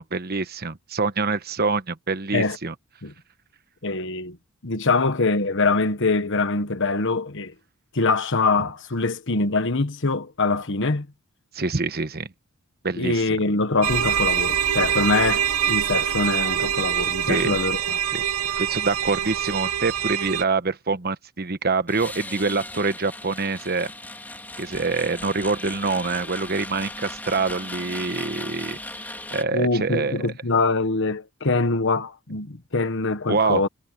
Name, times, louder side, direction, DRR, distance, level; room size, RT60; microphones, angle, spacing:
voice 1, 0.0-2.7 11.5-12.3 12.8-13.2 17.3-17.6 18.1-18.2 18.6-23.9 24.6-30.2 33.3-33.6, right 4 dB, 45° right, 1.1 m, -25 dB
voice 2, 3.8-4.4 4.6-7.5 7.9-11.1 13.0-18.0 29.5-33.7, left 3 dB, 55° left, 1.3 m, -24 dB
sound 1, 13.8-20.4, right 9 dB, 80° right, 0.8 m, -24 dB
sound 2, 21.9-29.4, left 2 dB, 10° left, 2.7 m, -37 dB
head